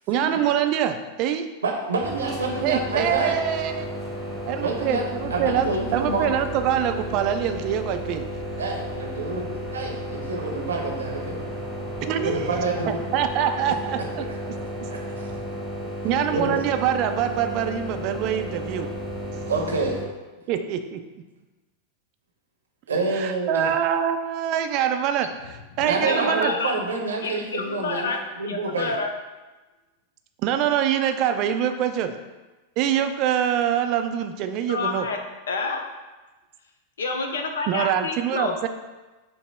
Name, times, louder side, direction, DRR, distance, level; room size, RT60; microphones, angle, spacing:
voice 1, 0.1-1.5 2.6-3.9 4.4-5.7 5.9-8.2 12.0-14.2 16.0-18.9 19.3-19.5 20.5-21.0 23.1-26.5 30.4-32.1 32.8-35.1 37.7-38.7, right 9 dB, 40° right, 7 dB, 0.3 m, -25 dB
voice 2, 1.6-3.4 4.6-5.1 5.3-6.3 8.6-11.4 12.2-13.0 14.2-15.0 16.3-16.6 19.5-20.0 22.9-23.7 25.8-28.1 28.4-28.9, right 3 dB, 70° right, 0 dB, 0.7 m, -28 dB
sound 1, 2.0-20.1, equal, 10° right, 0.9 m, -33 dB
Piano, 5.2-11.5, left 3 dB, 20° left, 1.2 m, -42 dB
voice 3, 25.8-26.7 27.2-28.2 28.5-29.1 34.7-35.2 35.5-35.8 37.0-38.5, left 3 dB, 65° left, 4 dB, 0.5 m, -28 dB
5.4 x 2.0 x 3.5 m, 1.2 s
figure-of-eight pair, 90°, 0 cm